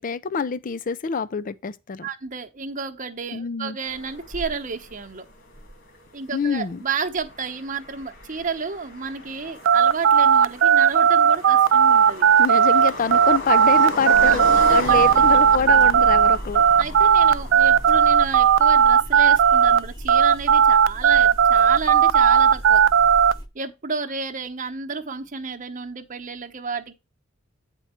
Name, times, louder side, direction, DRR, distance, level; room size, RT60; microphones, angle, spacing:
voice 1, 0.0-2.1 3.3-3.8 6.3-6.8 12.4-16.7, left 5 dB, 40° left, 0.4 m, -26 dB
voice 2, 2.0-5.2 6.1-12.3 14.2-15.2 16.8-22.8 23.5-26.9, right 5 dB, 40° right, 0.9 m, -31 dB
sound 1, 3.8-18.1, left 1 dB, 60° left, 2.5 m, -36 dB
sound 2, 9.6-19.8 20.1-23.3, right 7 dB, 65° right, 0.4 m, -16 dB
sound 3, 14.1-23.5, equal, 20° left, 0.9 m, -36 dB
9.1 x 4.5 x 4.4 m
head